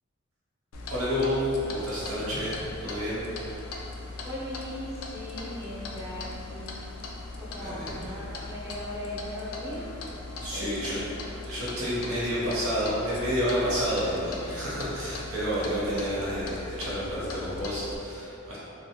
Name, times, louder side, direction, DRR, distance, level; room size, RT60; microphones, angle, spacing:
Clock, 0.7-18.0, left 2 dB, 85° left, 0.4 m, -39 dB
voice 1, 0.9-1.4 1.7-2.5 2.8-3.2 7.6-8.1 10.4-11.0 11.4-18.6, equal, 85° right, -9 dB, 0.9 m, -30 dB
voice 2, 4.2-6.9 7.4-9.8 10.5-11.1, left 1 dB, 15° right, -10 dB, 0.5 m, -38 dB
3.0 x 2.3 x 2.7 m, 2.8 s
head